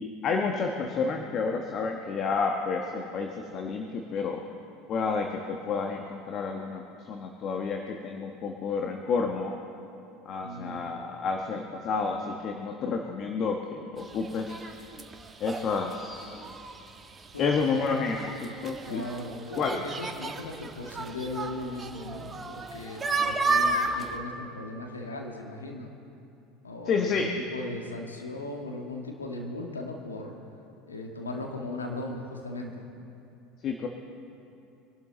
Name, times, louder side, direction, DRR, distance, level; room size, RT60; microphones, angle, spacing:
voice 1, 0.0-4.4 4.9-9.6 10.2-14.6 15.4-16.4 17.4-19.0 19.5-19.8 26.9-27.3 33.6-33.9, left 4 dB, 45° left, 2 dB, 1.3 m, -30 dB
voice 2, 10.4-10.8 17.3-17.5 18.9-25.9 26.6-30.4 30.9-32.9, left 2 dB, 85° left, 1 dB, 1.8 m, -38 dB
sound 1, 14.0-24.2, right 3 dB, 25° right, 1.3 m, -33 dB
24.0 x 12.0 x 4.0 m, 2.7 s
figure-of-eight pair, 70°, 0 cm